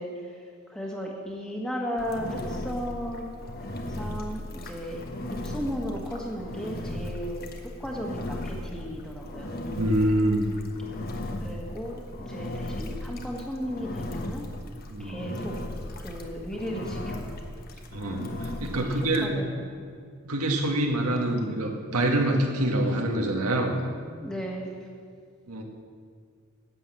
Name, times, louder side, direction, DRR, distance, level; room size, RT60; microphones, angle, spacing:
voice 1, 0.0-3.3 3.9-9.5 11.3-14.5 15.0-15.6 16.0-17.4 18.7-19.8 24.2-24.7, equal, 5° left, -1 dB, 1.6 m, -35 dB
Engine, 2.0-19.3, left 1 dB, 40° left, 1.1 m, -36 dB
voice 2, 9.8-10.5 14.9-15.2 17.9-19.3 20.2-23.9 25.5-25.6, right 1 dB, 90° right, 2 dB, 1.7 m, -26 dB
11.5 x 8.7 x 7.6 m, 2.1 s
head